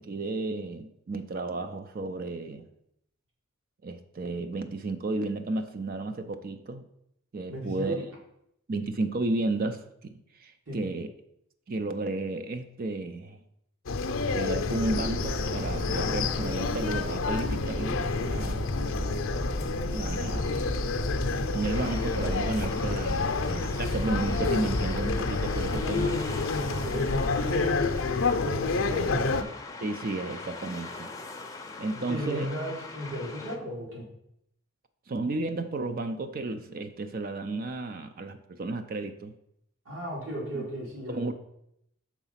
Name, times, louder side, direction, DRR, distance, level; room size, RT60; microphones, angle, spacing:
voice 1, 0.0-2.7 3.8-6.9 7.3-8.0 8.7-11.1 11.7-13.4 14.3-18.7 19.8-20.6 21.5-26.1 29.8-31.1 31.8-32.5 35.1-39.3 40.5-40.6 41.1-41.3, right 2 dB, 45° right, 9 dB, 0.4 m, -33 dB
voice 2, 7.5-8.0 10.7-10.8 25.7-27.9 28.4-29.5 31.9-34.0 39.8-41.3, equal, 65° right, -4 dB, 2.7 m, -35 dB
sound 1, 13.9-29.4, left 4 dB, 70° left, 0.6 m, -29 dB
sound 2, 14.8-25.8, equal, 25° right, 0.8 m, -34 dB
sound 3, 21.6-33.6, left 3 dB, 15° left, 0.5 m, -42 dB
6.1 x 3.9 x 5.6 m, 0.77 s
head